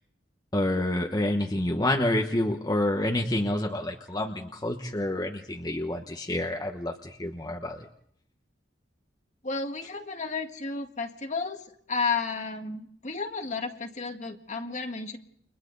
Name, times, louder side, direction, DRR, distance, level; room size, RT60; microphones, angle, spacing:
voice 1, 0.5-7.8, left 1 dB, 20° left, 2 dB, 1.2 m, -28 dB
voice 2, 9.4-15.2, left 4 dB, 40° left, 5 dB, 1.8 m, -32 dB
30.0 x 25.0 x 4.0 m, 0.66 s
head